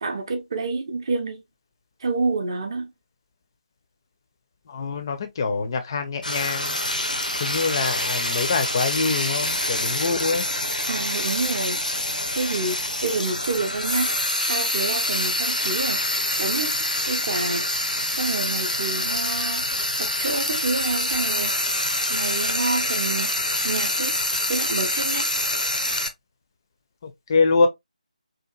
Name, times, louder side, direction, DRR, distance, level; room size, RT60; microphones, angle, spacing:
voice 1, 0.0-1.4 2.0-2.9 10.9-11.8 12.3-14.1 14.5-16.0 16.4-16.8 17.1-17.7 18.1-19.6 20.0-21.5 22.1-23.3 23.6-24.2 24.5-25.3, right 3 dB, 35° right, 0.5 m, -28 dB
voice 2, 4.7-6.8 7.4-10.4 27.0-27.7, left 4 dB, 30° left, 0.4 m, -24 dB
Frying (food), 6.2-26.1, left 1 dB, 90° left, 0.6 m, -26 dB
2.8 x 2.3 x 2.2 m
figure-of-eight pair, 155°, 4 cm